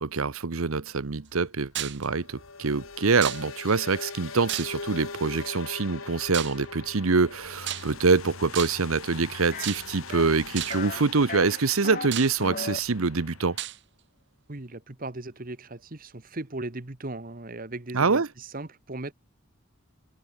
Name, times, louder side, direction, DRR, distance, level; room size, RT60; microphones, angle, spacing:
voice 1, 0.0-13.6 17.9-18.3, right 4 dB, 85° right, 0.9 m, -25 dB
sound 1, 1.2-13.6, left 4 dB, 85° left, 2.0 m, -42 dB
sound 2, 1.8-2.1 3.2-3.7 4.5-5.0 6.3-6.7 7.6-8.1 8.5-9.0 9.6-10.1 10.6-10.9 11.6-11.7 12.1-12.8 13.6-13.8, right 12 dB, 60° right, 1.3 m, -33 dB
sound 3, 9.5-9.7 10.1-10.4 10.7-11.0 11.3-12.1 12.4-12.8, left 4 dB, 40° left, 1.7 m, -35 dB
voice 2, 14.5-19.1, right 2 dB, 40° right, 1.3 m, -37 dB
head